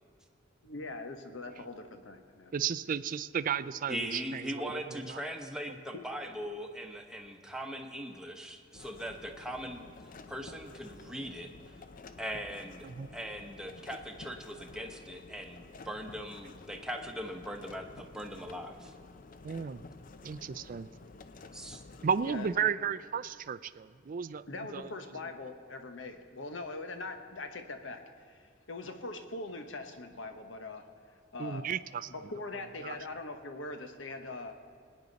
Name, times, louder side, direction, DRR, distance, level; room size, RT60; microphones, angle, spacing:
voice 1, 0.6-2.5 5.9-6.0 22.2-22.5 24.5-30.9 31.3-31.6 32.1-34.6, left 2 dB, 85° left, 7 dB, 1.1 m, -42 dB
voice 2, 2.5-5.2 12.8-13.1 19.4-19.8 20.2-20.9 22.0-24.4 24.7-24.9 31.4-32.1 32.8-33.0, right 7 dB, 45° right, 14 dB, 0.4 m, -34 dB
voice 3, 3.9-9.9 10.3-11.5 12.2-12.9 13.1-18.9 21.5-21.8, equal, 5° right, 3 dB, 1.0 m, -40 dB
sound 1, 8.7-22.6, left 3 dB, 45° left, 0.5 m, -51 dB
21.0 x 9.6 x 4.0 m, 2.3 s
head